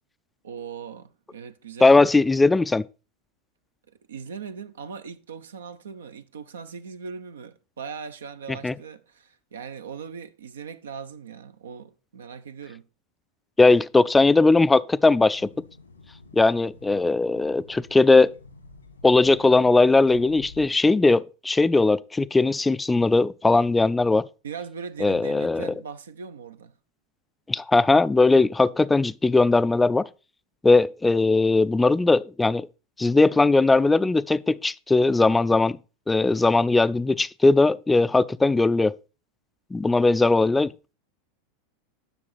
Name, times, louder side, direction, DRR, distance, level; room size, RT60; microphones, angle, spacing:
voice 1, 0.4-2.0 3.9-12.9 24.4-26.7, right 6 dB, 75° right, 0.7 m, -39 dB
voice 2, 1.8-2.8 8.6-8.7 13.6-15.5 16.3-18.3 19.0-24.3 25.0-25.7 27.5-30.1 30.6-32.7 33.0-35.8 36.1-38.9 39.7-40.9, left 3 dB, 10° left, 0.4 m, -19 dB
sound 1, 15.2-20.7, left 3 dB, 90° left, 1.5 m, -49 dB
10.5 x 6.4 x 4.2 m
figure-of-eight pair, 85°, 0 cm